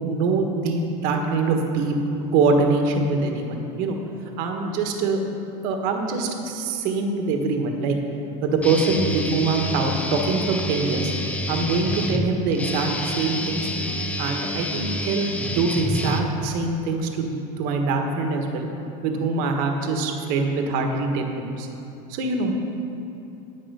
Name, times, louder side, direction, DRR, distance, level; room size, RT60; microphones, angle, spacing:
voice 1, 0.0-1.9 2.3-4.0 4.4-5.2 5.6-8.0 8.4-11.1 11.5-13.7 14.2-18.7 19.0-21.7 22.1-22.5, right 3 dB, 50° right, 3 dB, 1.4 m, -24 dB
Guitar, 8.6-16.7, left 1 dB, 5° left, 0.6 m, -28 dB
9.6 x 9.4 x 5.6 m, 2.9 s
supercardioid pair, 160°, 18 cm